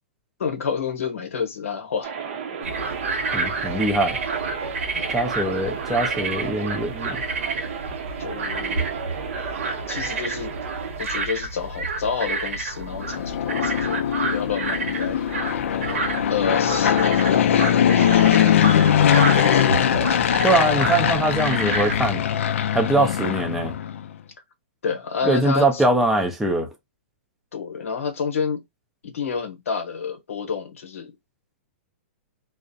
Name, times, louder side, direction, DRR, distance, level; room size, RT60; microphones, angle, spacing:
voice 1, 0.4-2.1 4.9-5.1 8.2-8.9 9.9-10.5 11.0-14.1 14.3-15.2 16.3-19.7 19.9-20.2 22.9-23.3 24.8-25.8 27.5-28.6 29.0-31.1, left 6 dB, 90° left, 0.9 m, -29 dB
sound 1, 2.0-11.0, right 7 dB, 50° right, 0.6 m, -33 dB
sound 2, 2.6-22.1, right 3 dB, 80° right, 1.0 m, -30 dB
voice 2, 3.3-4.2 5.1-7.2 20.4-22.2 22.7-23.7 25.2-26.7, right 2 dB, 5° right, 0.4 m, -22 dB
Fixed-wing aircraft airplane, 13.0-24.1, left 9 dB, 75° left, 0.4 m, -21 dB
2.4 x 2.0 x 2.5 m
hypercardioid pair, 160°, 7 cm